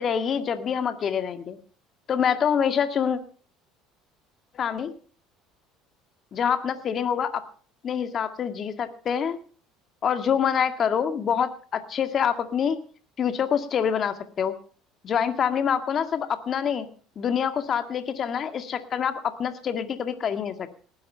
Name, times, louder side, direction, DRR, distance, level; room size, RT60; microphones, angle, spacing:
voice 1, 0.0-1.6 2.1-3.2 4.5-4.9 6.3-7.4 7.8-9.4 10.0-12.8 13.2-14.5 15.0-16.9 17.2-20.7, left 7 dB, 40° left, 9 dB, 2.0 m, -26 dB
19.5 x 11.0 x 5.6 m, 0.43 s
supercardioid pair, 105°, 0 cm